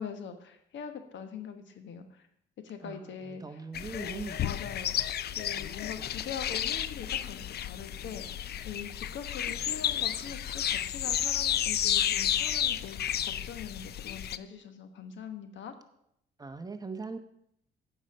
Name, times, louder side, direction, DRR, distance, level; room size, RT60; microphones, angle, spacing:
voice 1, 0.0-2.2 2.6-3.6 3.9-8.4 8.6-15.7, left 7 dB, 70° left, 8 dB, 1.3 m, -43 dB
voice 2, 2.8-4.4 16.4-17.2, right 4 dB, 20° right, 8 dB, 0.9 m, -40 dB
sound 1, 3.7-14.4, left 10 dB, 55° left, 0.5 m, -32 dB
8.6 x 5.5 x 7.8 m, 0.73 s
cardioid pair, 90°, 20 cm